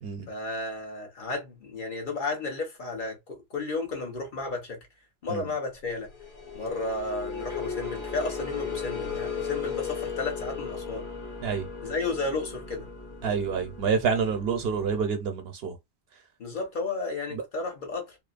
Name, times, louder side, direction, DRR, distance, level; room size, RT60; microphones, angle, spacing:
voice 1, 0.3-4.8 5.2-6.1 6.5-11.0 11.8-12.9 16.4-18.2, left 3 dB, 55° left, 1.0 m, -33 dB
sound 1, 6.0-15.0, left 6 dB, 20° left, 0.6 m, -36 dB
voice 2, 13.2-15.7, right 6 dB, 75° right, 0.9 m, -27 dB
2.8 x 2.0 x 2.4 m
omnidirectional pair, 1.1 m